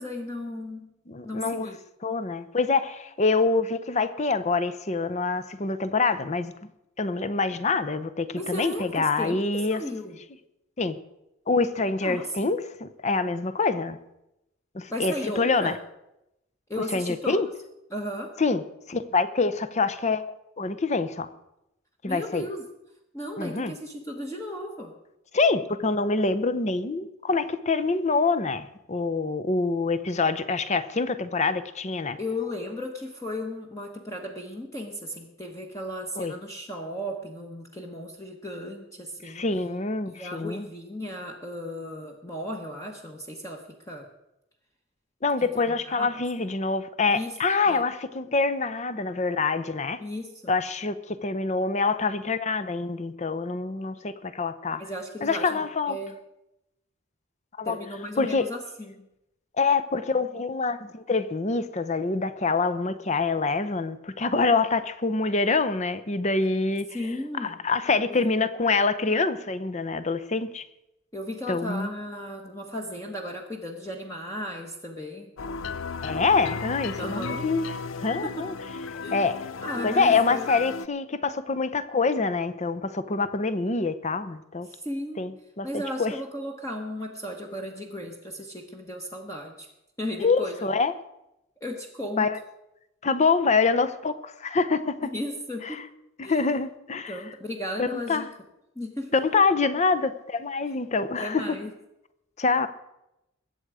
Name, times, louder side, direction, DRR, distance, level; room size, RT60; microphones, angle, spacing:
voice 1, 0.0-0.9 1.2-1.8 8.3-10.2 12.0-12.5 14.9-15.8 16.7-17.4 17.9-18.4 22.1-22.7 23.1-24.9 32.2-39.4 40.1-44.1 45.4-46.1 47.1-47.4 47.7-47.8 50.0-50.5 54.8-56.1 57.6-59.0 66.9-67.6 68.1-68.2 71.1-75.3 77.0-77.5 78.2-78.5 79.0-79.2 79.6-80.5 84.7-85.2 85.6-89.7 90.0-90.7 91.6-92.4 95.1-95.9 96.2-96.4 97.1-98.3 98.7-99.2 101.2-101.7, left 1 dB, 15° left, 1 dB, 1.2 m, -35 dB
voice 2, 1.1-1.7 2.0-6.5 7.0-9.8 10.8-11.0 11.5-14.0 14.7-15.8 16.9-17.5 18.4-18.6 18.9-20.2 20.6-21.3 22.0-22.4 23.4-23.7 25.3-32.2 36.2-36.3 39.2-40.7 45.2-50.0 50.5-54.8 55.2-56.0 57.6-57.8 58.2-58.5 59.6-66.9 67.4-70.6 71.5-71.9 76.0-77.7 78.0-78.5 78.9-79.4 79.8-84.7 85.2-86.1 90.2-90.9 92.2-92.4 93.0-95.1 95.6-95.8 96.2-97.2 97.8-98.3 99.1-101.6 102.4-102.7, left 4 dB, 35° left, 12 dB, 0.7 m, -25 dB
sound 1, 75.4-80.9, left 5 dB, 70° left, 0.5 m, -35 dB
21.5 x 8.1 x 4.9 m, 0.88 s
head